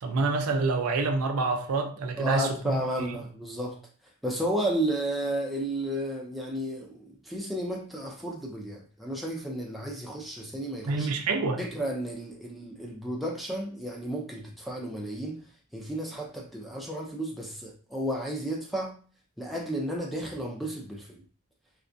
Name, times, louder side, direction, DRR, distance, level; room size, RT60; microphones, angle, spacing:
voice 1, 0.0-2.8 10.9-11.6, right 3 dB, 80° right, 0.4 m, -27 dB
voice 2, 2.2-3.8 4.2-11.1 11.6-15.4 15.7-19.0 19.4-21.2, right 1 dB, ahead, 0.3 m, -33 dB
2.3 x 2.1 x 2.5 m
head